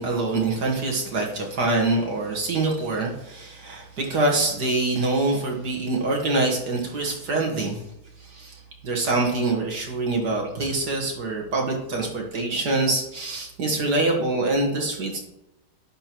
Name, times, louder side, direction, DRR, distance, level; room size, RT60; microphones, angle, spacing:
voice 1, 0.0-7.8 8.2-15.2, right 2 dB, 55° right, 0 dB, 2.1 m, -25 dB
11.5 x 7.8 x 3.1 m, 0.86 s
omnidirectional pair, 2.2 m